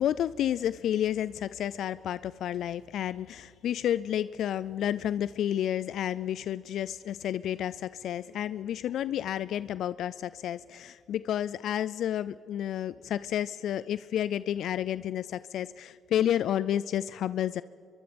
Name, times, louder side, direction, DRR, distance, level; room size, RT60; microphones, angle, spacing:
voice 1, 0.0-17.6, left 10 dB, 75° left, 16 dB, 0.4 m, -30 dB
24.5 x 23.0 x 5.2 m, 2.6 s
cardioid pair, 90°, 0 cm